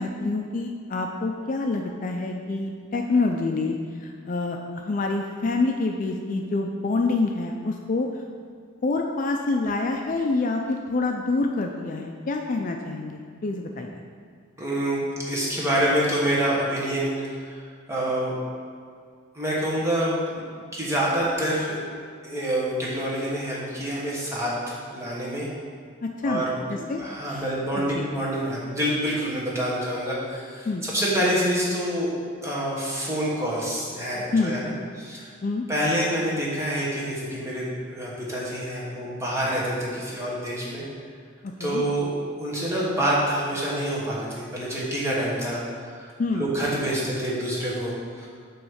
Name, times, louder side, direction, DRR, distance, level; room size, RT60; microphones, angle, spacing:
voice 1, 0.0-8.1 8.8-13.9 26.0-26.4 26.7-27.4 27.7-27.8 30.7-30.8 34.3-34.6 35.4-35.7 41.4-41.8 46.2-46.4, left 3 dB, 40° left, 2 dB, 0.3 m, -27 dB
voice 2, 14.6-17.1 17.4-17.6 17.9-18.4 19.3-20.4 20.7-21.8 22.2-25.5 26.2-32.1 32.4-35.3 35.7-40.8 41.6-42.1 42.4-45.6 45.9-46.1 46.3-48.3, right 1 dB, 15° right, -6 dB, 1.3 m, -27 dB
7.7 x 3.1 x 6.3 m, 2.1 s
head